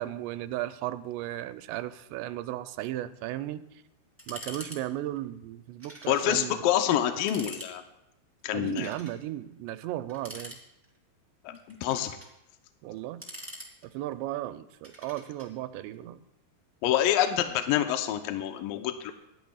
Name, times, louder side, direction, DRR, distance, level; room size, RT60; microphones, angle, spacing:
voice 1, 0.0-3.6 4.3-6.7 8.5-10.6 12.8-13.3 13.8-16.2, right 14 dB, 85° right, 11 dB, 2.8 m, -35 dB
sound 1, 4.2-4.8 5.1-5.2 5.8-6.2 6.6-6.7 7.1-7.7 8.6-9.2 10.1-11.0 11.5-12.3 13.0-14.1 14.8-15.5, equal, 5° right, 1.9 m, -44 dB
voice 2, 6.1-7.8 8.4-8.9 11.4-12.1 16.8-19.1, left 11 dB, 80° left, 7 dB, 2.0 m, -27 dB
27.0 x 11.5 x 2.3 m, 0.86 s
omnidirectional pair, 4.9 m